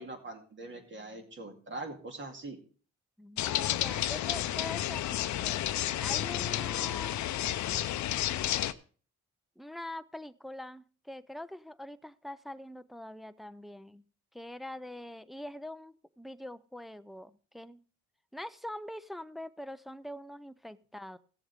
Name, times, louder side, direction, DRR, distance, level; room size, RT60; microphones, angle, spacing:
voice 1, 0.0-2.6, right 2 dB, 40° right, 3 dB, 2.4 m, -42 dB
voice 2, 3.2-5.6 6.0-7.2 9.6-14.0 14.3-17.8 18.3-21.2, left 1 dB, ahead, 12 dB, 0.4 m, -44 dB
sound 1, 3.4-8.7, left 13 dB, 70° left, 0.6 m, -31 dB
16.5 x 7.2 x 3.5 m, 0.42 s
cardioid pair, 90°, 30 cm